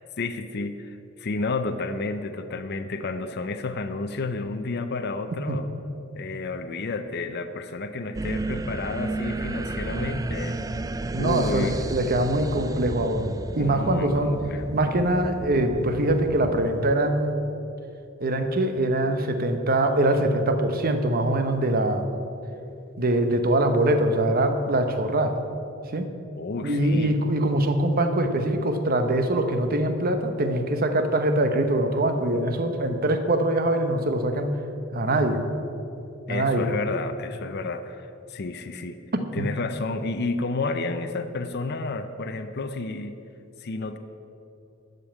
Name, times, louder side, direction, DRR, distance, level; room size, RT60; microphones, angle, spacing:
voice 1, 0.2-5.7 6.2-10.6 11.2-11.8 13.5-14.6 26.3-27.2 36.3-39.0 39.3-43.2 43.6-44.0, left 3 dB, 55° left, 8 dB, 0.6 m, -31 dB
sound 1, 8.1-16.9, right 2 dB, 15° right, 0.3 m, -33 dB
voice 2, 11.1-14.3 14.7-17.4 18.2-22.0 23.0-25.3 25.9-26.1 26.6-34.6 34.9-35.4 36.3-36.7 39.1-39.5, right 1 dB, 45° right, 7 dB, 1.0 m, -23 dB
13.5 x 5.4 x 8.7 m, 2.7 s
head